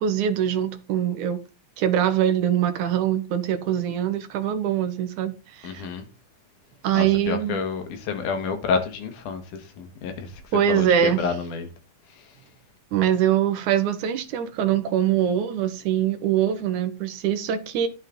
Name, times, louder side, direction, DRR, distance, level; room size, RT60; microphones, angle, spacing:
voice 1, 0.0-1.4 1.8-5.9 6.8-7.6 10.5-11.2 12.9-17.9, right 9 dB, 80° right, 2.6 m, -23 dB
voice 2, 5.6-6.1 6.9-10.4 10.7-11.7 12.1-12.3, left 5 dB, 80° left, 3.1 m, -29 dB
11.5 x 7.6 x 3.8 m
omnidirectional pair, 3.5 m